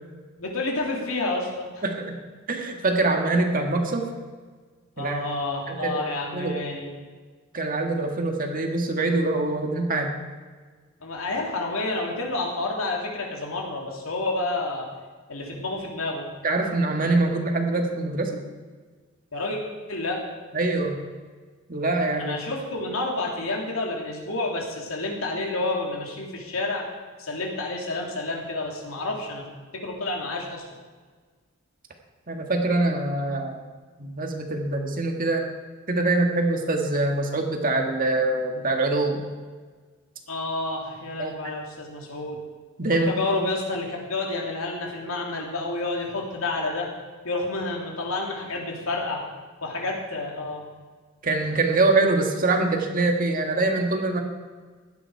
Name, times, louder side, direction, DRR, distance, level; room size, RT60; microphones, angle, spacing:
voice 1, 0.4-1.8 5.0-6.9 11.0-14.9 15.3-16.3 19.3-19.6 19.9-20.2 22.2-26.9 27.2-29.4 29.7-30.6 40.3-42.4 42.9-46.9 47.2-49.2 49.6-50.6, left 2 dB, 70° left, 0 dB, 2.9 m, -29 dB
voice 2, 1.8-2.2 2.5-4.1 5.0-5.2 5.7-6.0 6.3-6.6 7.5-10.2 16.4-18.4 20.5-21.0 21.7-22.4 32.3-33.6 34.0-35.4 35.9-39.2 41.2-41.5 42.8-43.1 51.2-54.2, right 2 dB, 40° right, 3 dB, 1.9 m, -24 dB
16.5 x 11.5 x 4.8 m, 1.5 s
head